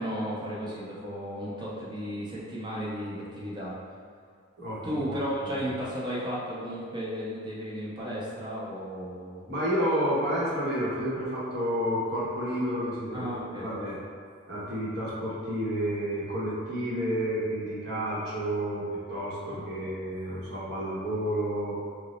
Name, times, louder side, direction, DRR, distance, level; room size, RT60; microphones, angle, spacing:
voice 1, 0.0-3.8 4.8-9.4 13.1-13.7 19.4-19.9, equal, 20° right, -7 dB, 0.6 m, -34 dB
voice 2, 4.6-5.2 5.4-5.6 9.5-13.3 13.6-14.0 14.5-21.8, equal, 55° right, -7 dB, 0.9 m, -30 dB
3.0 x 2.0 x 3.9 m, 2.2 s
head